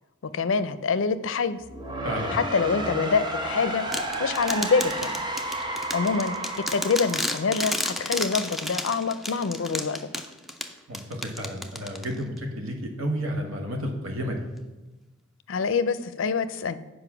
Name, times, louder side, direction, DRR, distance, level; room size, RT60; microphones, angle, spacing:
voice 1, 0.2-1.6 2.3-3.8 4.2-5.2 5.9-6.4 6.7-10.0 15.5-16.8, left 5 dB, 70° left, 14 dB, 0.5 m, -25 dB
sound 1, 1.6-8.5, right 1 dB, 20° right, 0.8 m, -32 dB
voice 2, 2.0-2.4 10.9-14.4, equal, 80° right, 2 dB, 1.2 m, -31 dB
sound 2, 3.9-12.4, left 1 dB, ahead, 0.5 m, -32 dB
8.0 x 5.1 x 6.0 m, 1.1 s
head